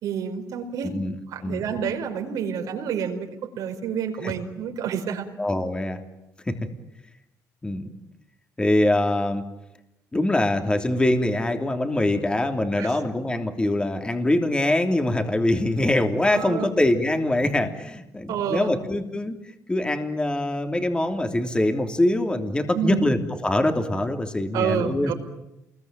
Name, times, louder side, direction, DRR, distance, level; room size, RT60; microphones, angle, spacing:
voice 1, 0.0-0.9 1.3-5.3 12.8-13.0 16.3-16.7 18.3-18.7 22.7-23.1 24.5-25.1, right 7 dB, 80° right, 4 dB, 5.0 m, -28 dB
voice 2, 0.8-1.1 1.4-1.6 5.4-6.0 6.5-6.6 7.6-7.9 8.6-9.4 10.1-19.4 19.7-25.1, left 1 dB, 15° left, 6 dB, 3.1 m, -23 dB
29.0 x 22.0 x 9.2 m, 0.89 s
cardioid pair, 110°, 6 cm